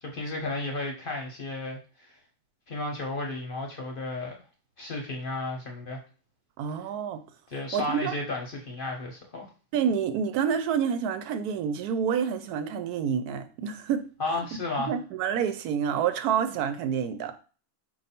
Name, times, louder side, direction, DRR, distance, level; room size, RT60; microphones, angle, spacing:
voice 1, 0.0-2.1 2.7-4.3 4.8-6.0 7.5-9.5 14.2-15.0, left 2 dB, 45° left, 0.8 m, -33 dB
voice 2, 6.6-7.2 7.7-8.1 9.7-14.0 14.8-17.4, right 7 dB, 85° right, 1.1 m, -28 dB
4.6 x 2.6 x 4.2 m
omnidirectional pair, 1.6 m